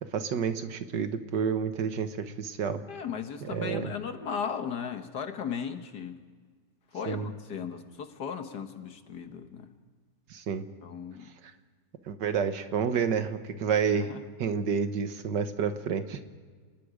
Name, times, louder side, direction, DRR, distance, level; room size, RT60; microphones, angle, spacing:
voice 1, 0.0-2.8 3.4-3.9 7.1-7.3 10.3-10.6 12.1-14.1 14.4-16.2, right 6 dB, 75° right, 9 dB, 1.8 m, -29 dB
voice 2, 2.9-6.2 6.9-9.7 10.8-11.3 13.9-14.2 15.9-16.0, left 7 dB, 65° left, 7 dB, 1.7 m, -36 dB
29.5 x 20.0 x 5.0 m, 1.5 s
omnidirectional pair, 1.9 m